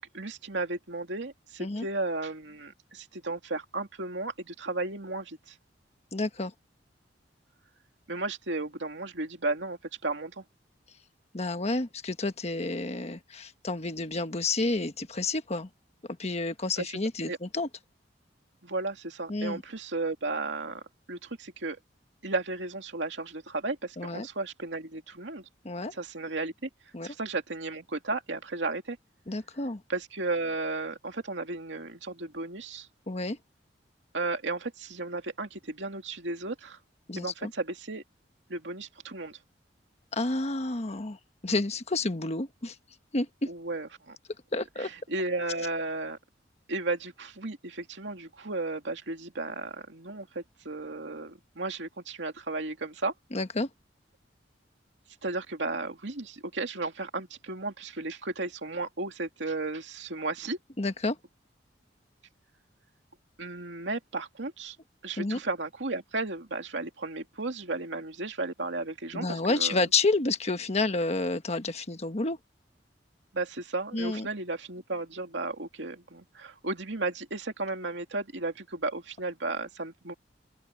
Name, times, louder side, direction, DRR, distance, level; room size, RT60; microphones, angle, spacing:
voice 1, 0.0-5.6 8.1-10.4 16.8-16.9 17.2-17.4 18.6-20.8 21.1-21.8 22.2-25.5 25.9-26.7 27.0-29.0 29.9-32.9 34.1-36.8 37.2-38.0 38.5-39.4 43.5-44.2 44.8-46.2 46.7-53.1 55.2-60.6 63.4-64.8 65.0-69.8 73.3-80.1, right 3 dB, 85° right, 2.5 m, -34 dB
voice 2, 6.1-6.5 11.3-15.7 16.2-17.7 19.3-19.6 24.0-24.3 25.6-25.9 26.9-27.1 29.3-29.8 33.1-33.4 37.1-37.5 40.1-41.2 41.4-42.7 43.1-43.5 44.5-44.9 53.3-53.7 60.8-61.2 65.2-65.4 69.1-72.4 73.9-74.3, left 3 dB, 35° left, 1.3 m, -30 dB
open air
head